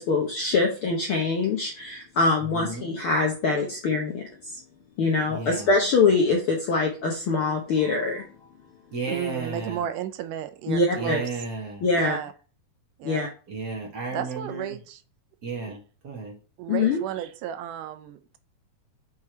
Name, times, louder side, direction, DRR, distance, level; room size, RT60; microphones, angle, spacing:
voice 1, 0.0-4.6 5.0-8.3 10.7-11.2 11.8-12.2 13.0-13.3 16.7-17.0, left 4 dB, 70° left, 1 dB, 1.3 m, -24 dB
voice 2, 2.4-2.9 5.3-5.7 8.9-9.8 10.9-11.8 13.5-14.7 15.4-16.3, right 3 dB, 40° right, -2 dB, 1.6 m, -33 dB
voice 3, 9.1-11.4 11.9-12.3 13.0-13.3 14.1-15.0 15.6-15.8 16.6-18.4, right 10 dB, 85° right, 9 dB, 2.2 m, -33 dB
6.4 x 3.6 x 4.3 m, 0.36 s
omnidirectional pair, 3.6 m